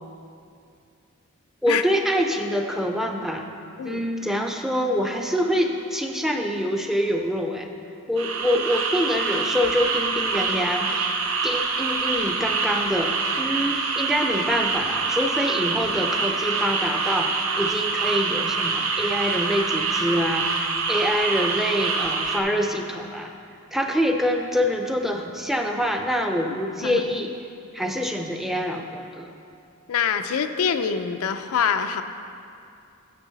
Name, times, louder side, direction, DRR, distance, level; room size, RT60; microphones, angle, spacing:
voice 1, 1.6-3.5 3.8-7.7 8.1-11.1 11.4-23.3 23.7-27.4 27.7-29.3, equal, ahead, 3 dB, 0.5 m, -25 dB
sound 1, 8.2-22.4, right 4 dB, 80° right, 0.7 m, -25 dB
voice 2, 29.9-32.0, left 7 dB, 85° left, 8 dB, 0.4 m, -25 dB
9.9 x 6.9 x 4.0 m, 2.5 s
head